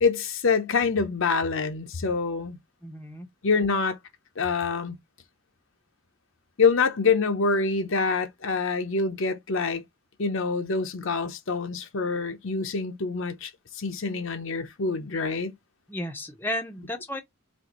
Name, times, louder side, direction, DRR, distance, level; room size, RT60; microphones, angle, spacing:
voice 1, 0.0-2.6 3.4-4.0 4.4-5.0 6.6-9.8 10.2-15.5, left 4 dB, 60° left, 0.7 m, -26 dB
voice 2, 2.8-3.3 15.9-17.2, left 1 dB, 10° left, 0.7 m, -33 dB
4.3 x 3.0 x 3.0 m
head